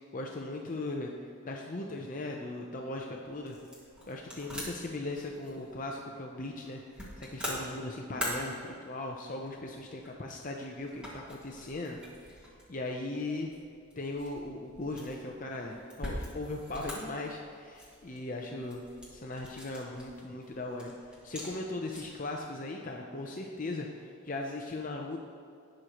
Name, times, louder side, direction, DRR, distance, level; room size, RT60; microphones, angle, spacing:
voice 1, 0.1-1.1 1.4-3.6 4.1-13.5 14.0-18.8 19.1-20.9 21.2-25.2, left 2 dB, 40° left, 1 dB, 0.6 m, -38 dB
sound 1, 2.7-22.3, left 1 dB, 5° right, 2.0 m, -45 dB
19.0 x 6.4 x 3.0 m, 2.5 s
head